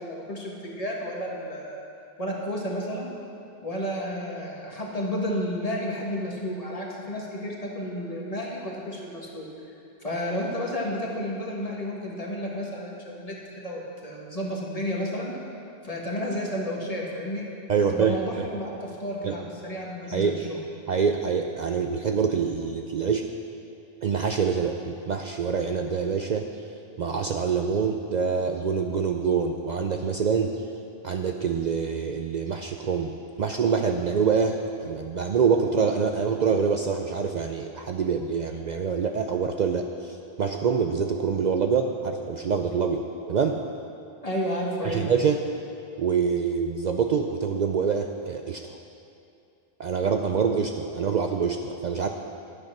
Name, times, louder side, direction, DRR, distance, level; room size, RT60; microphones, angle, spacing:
voice 1, 0.0-1.8 2.2-3.1 3.6-9.5 10.0-15.4 15.8-17.5 17.9-20.6 44.2-45.0, equal, 35° left, -3 dB, 1.8 m, -31 dB
voice 2, 17.7-18.5 19.2-19.3 20.1-20.4 20.9-23.3 24.0-26.5 27.0-30.6 31.0-43.6 44.8-45.4 46.0-48.8 49.8-52.1, right 6 dB, 55° right, 4 dB, 0.6 m, -25 dB
11.5 x 8.8 x 5.9 m, 2.6 s
omnidirectional pair, 1.0 m